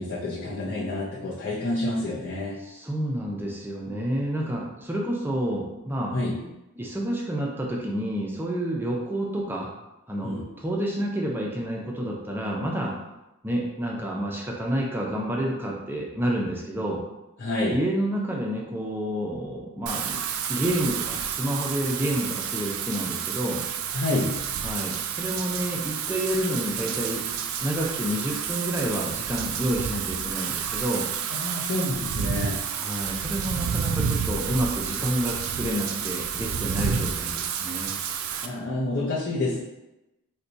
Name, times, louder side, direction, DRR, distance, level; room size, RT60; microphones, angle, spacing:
voice 1, 0.0-2.6 6.1-6.4 10.2-10.5 17.4-17.8 23.9-24.4 31.3-32.6 33.5-33.6 38.4-39.6, left 2 dB, 50° left, -7 dB, 0.6 m, -28 dB
voice 2, 2.6-6.1 6.8-9.7 10.1-13.0 13.4-17.0 17.7-20.2 20.5-23.6 24.6-27.2 27.6-31.1 32.7-37.9, right 1 dB, 10° right, -2 dB, 0.4 m, -29 dB
Wind / Rain, 19.9-38.5, right 7 dB, 75° right, 0.3 m, -30 dB
4.2 x 2.2 x 2.6 m, 0.95 s
head